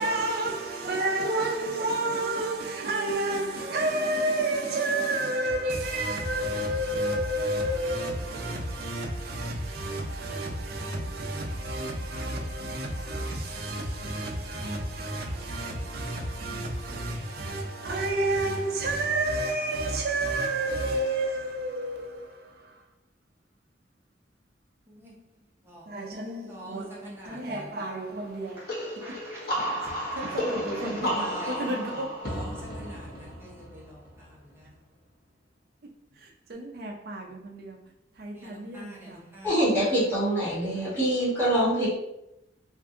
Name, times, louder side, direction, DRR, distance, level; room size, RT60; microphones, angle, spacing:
voice 1, 0.0-22.8 25.9-28.6 30.1-32.2 36.2-37.8 38.2-39.2, right 1 dB, 55° right, 0.6 m, -30 dB
voice 2, 24.9-25.3 25.6-25.9 26.5-27.8 28.5-34.7 38.3-39.5 40.0-40.1 40.4-41.0, right 1 dB, 15° right, 0.8 m, -45 dB
sound 1, 28.7-34.2, equal, 55° left, 1.0 m, -32 dB
voice 3, 39.4-41.9, right 1 dB, 10° left, 1.3 m, -24 dB
2.6 x 2.5 x 3.6 m
head